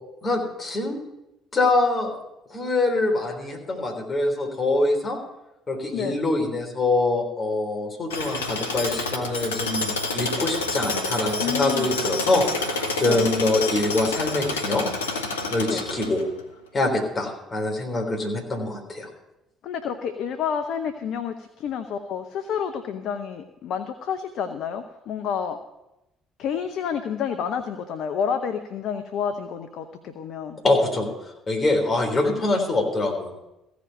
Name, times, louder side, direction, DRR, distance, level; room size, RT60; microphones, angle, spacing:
voice 1, 0.2-1.0 1.5-2.1 2.5-5.2 5.7-14.8 15.5-16.2 16.7-19.1 30.6-31.1 31.5-33.5, left 2 dB, 35° left, 1 dB, 3.7 m, -24 dB
Tools, 8.1-16.4, left 3 dB, 85° left, 1.0 m, -28 dB
voice 2, 11.4-11.9 13.0-13.3 15.7-15.8 19.6-25.6 26.4-30.6, left 7 dB, 60° left, 8 dB, 0.8 m, -29 dB
15.5 x 5.2 x 9.0 m, 0.93 s
hypercardioid pair, 50°, 0 cm